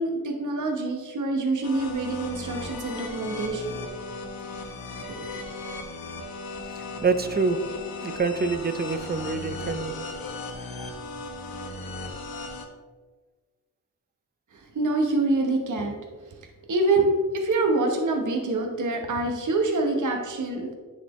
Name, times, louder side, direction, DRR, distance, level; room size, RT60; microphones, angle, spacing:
voice 1, 0.0-3.6 5.1-5.3 14.7-16.0 16.7-20.7, right 2 dB, 60° right, 2 dB, 1.0 m, -25 dB
sound 1, 1.6-12.6, left 3 dB, 80° left, 1.0 m, -37 dB
voice 2, 7.0-7.6 8.0-9.9, right 4 dB, 30° right, 9 dB, 0.5 m, -26 dB
9.7 x 4.3 x 3.1 m, 1.4 s
cardioid pair, 80°, 35 cm